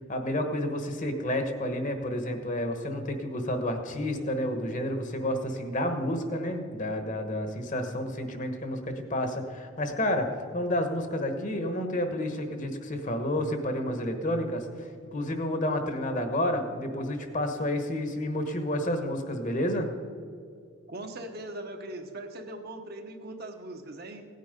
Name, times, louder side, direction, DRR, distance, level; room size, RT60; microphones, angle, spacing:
voice 1, 0.1-19.9, left 1 dB, 35° left, 7 dB, 1.2 m, -30 dB
voice 2, 20.9-24.3, right 1 dB, 45° right, 4 dB, 1.1 m, -40 dB
16.5 x 9.4 x 5.2 m, 2.2 s
head